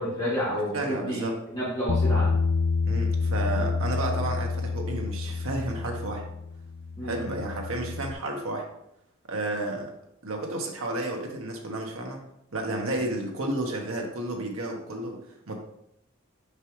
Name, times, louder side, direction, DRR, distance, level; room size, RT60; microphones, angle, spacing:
voice 1, 0.0-2.3 7.0-7.2, equal, 20° left, -11 dB, 2.4 m, -30 dB
voice 2, 0.5-1.4 2.9-6.3 7.0-8.7 9.3-9.9 10.2-12.2 12.5-15.6, right 2 dB, 75° right, 1 dB, 1.0 m, -32 dB
Bass guitar, 1.9-8.1, left 4 dB, 50° left, 0.4 m, -28 dB
6.6 x 4.8 x 3.1 m, 0.79 s
head